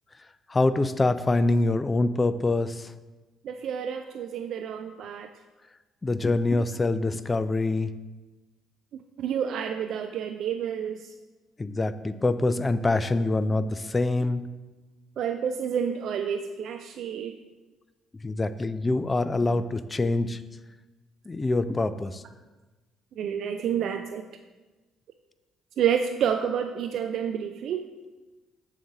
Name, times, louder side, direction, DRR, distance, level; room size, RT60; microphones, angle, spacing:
voice 1, 0.5-2.7 6.0-7.9 11.6-14.5 18.2-20.4 21.3-22.1, left 2 dB, 25° left, 13 dB, 0.4 m, -25 dB
voice 2, 3.4-5.3 8.9-11.1 15.2-17.4 23.2-24.3 25.8-27.9, right 8 dB, 65° right, 6 dB, 0.3 m, -29 dB
7.1 x 2.7 x 5.8 m, 1.2 s
hypercardioid pair, 55°, 0 cm